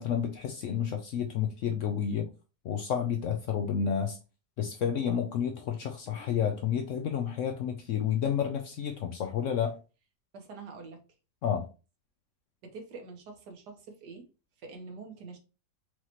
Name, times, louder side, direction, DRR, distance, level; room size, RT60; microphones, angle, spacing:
voice 1, 0.0-2.3 2.6-4.2 4.6-9.8 11.4-11.7, left 8 dB, 70° left, 0.7 m, -30 dB
voice 2, 10.3-11.0 12.6-14.2 14.6-15.4, right 4 dB, 90° right, 1.6 m, -45 dB
4.8 x 3.0 x 2.9 m
omnidirectional pair, 1.7 m